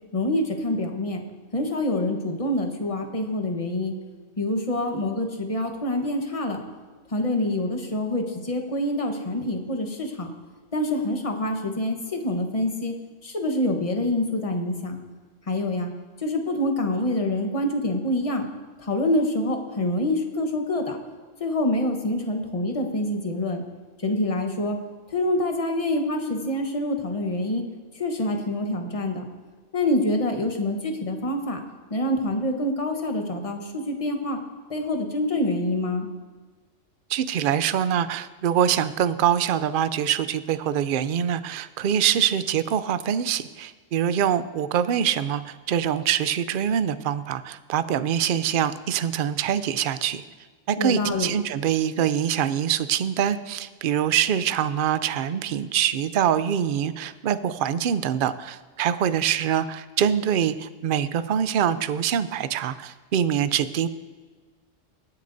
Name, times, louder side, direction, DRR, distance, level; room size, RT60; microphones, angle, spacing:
voice 1, 0.1-1.2 1.5-4.0 4.4-6.6 7.1-10.3 10.7-13.0 13.2-15.0 15.5-15.9 16.2-18.4 18.8-21.0 21.4-23.6 24.0-24.8 25.1-27.6 27.9-29.2 29.7-31.6 31.9-34.4 34.7-36.1 50.8-51.3, left 1 dB, 30° left, 3 dB, 1.2 m, -26 dB
voice 2, 37.1-50.2 50.7-63.9, right 9 dB, 60° right, 13 dB, 0.6 m, -24 dB
23.0 x 8.5 x 2.7 m, 1.4 s
omnidirectional pair, 1.3 m